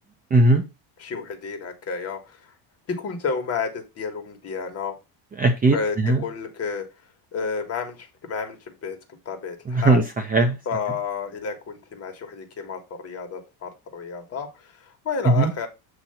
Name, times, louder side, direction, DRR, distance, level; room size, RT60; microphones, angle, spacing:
voice 1, 0.3-0.6 5.4-6.2 9.7-10.6 15.3-15.5, right 2 dB, 20° right, 6 dB, 0.6 m, -19 dB
voice 2, 1.0-2.5 2.9-5.0 5.7-6.9 7.3-9.0 9.2-10.0 10.6-15.7, left 5 dB, 35° left, 4 dB, 1.5 m, -31 dB
7.7 x 2.9 x 5.5 m, 0.26 s
cardioid pair, 145°, 44 cm